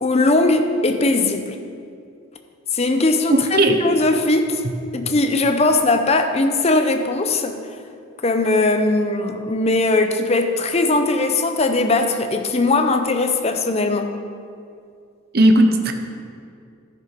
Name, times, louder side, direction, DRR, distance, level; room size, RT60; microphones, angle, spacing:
voice 1, 0.0-1.6 2.7-4.6 4.9-7.6 8.2-14.1, left 2 dB, 30° left, 6 dB, 0.6 m, -19 dB
voice 2, 3.3-3.8 15.3-15.9, right 1 dB, 45° right, 5 dB, 0.8 m, -15 dB
12.0 x 6.8 x 5.1 m, 2.4 s
head